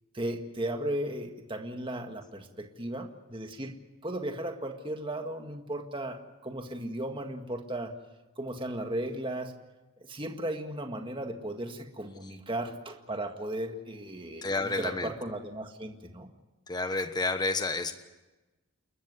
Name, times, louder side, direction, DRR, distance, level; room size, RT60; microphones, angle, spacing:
voice 1, 0.1-3.7 4.0-8.0 8.4-9.5 10.1-16.3, right 1 dB, 25° right, 4 dB, 1.8 m, -36 dB
voice 2, 14.4-15.1 16.7-17.9, left 3 dB, 20° left, 8 dB, 1.3 m, -30 dB
29.5 x 13.5 x 9.7 m, 1.1 s
head